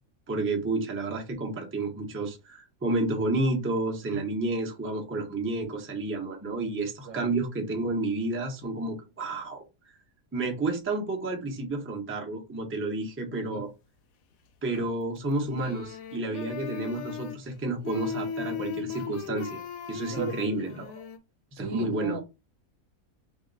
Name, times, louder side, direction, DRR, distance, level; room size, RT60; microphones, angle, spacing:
voice 1, 0.3-9.6 10.3-13.7 14.6-19.6 19.9-20.9 21.5-22.2, right 2 dB, 15° right, 0.6 m, -30 dB
sound 1, 14.7-15.2 15.4-17.5 17.8-21.2, left 7 dB, 80° left, 1.0 m, -37 dB
voice 2, 21.6-22.2, right 5 dB, 65° right, 1.0 m, -36 dB
2.9 x 2.8 x 4.0 m
omnidirectional pair, 1.4 m